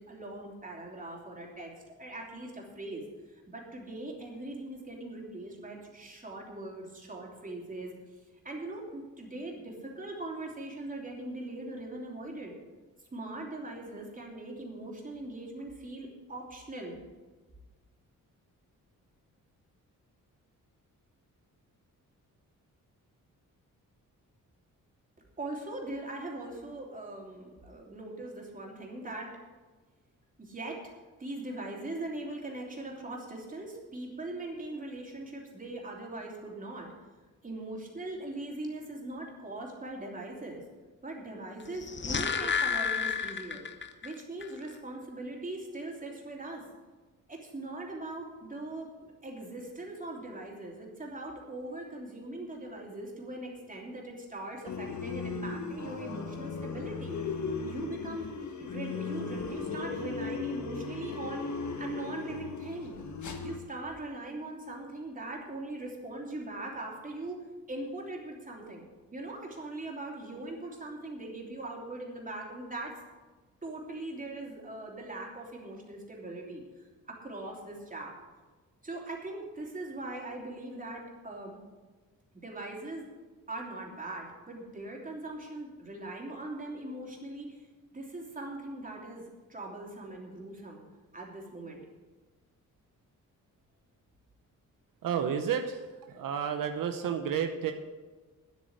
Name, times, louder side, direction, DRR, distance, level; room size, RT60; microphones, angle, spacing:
voice 1, 0.0-7.9 8.4-12.5 13.1-17.0 25.4-29.3 30.4-30.9 31.2-36.9 37.4-40.6 41.0-43.6 44.0-46.6 47.3-57.2 57.6-58.3 58.6-63.0 63.4-73.0 73.6-78.2 78.8-81.6 82.3-83.1 83.5-87.7 87.9-90.8 91.1-91.8, right 2 dB, 25° right, -1 dB, 3.0 m, -41 dB
sound 1, 41.7-44.1 44.4-44.5, left 6 dB, 35° left, 0.8 m, -31 dB
sound 2, 54.7-63.6, left 4 dB, 60° left, 1.5 m, -37 dB
voice 2, 95.0-97.7, right 8 dB, 85° right, 6 dB, 0.9 m, -31 dB
9.7 x 8.4 x 7.9 m, 1.3 s
cardioid pair, 110°, 33 cm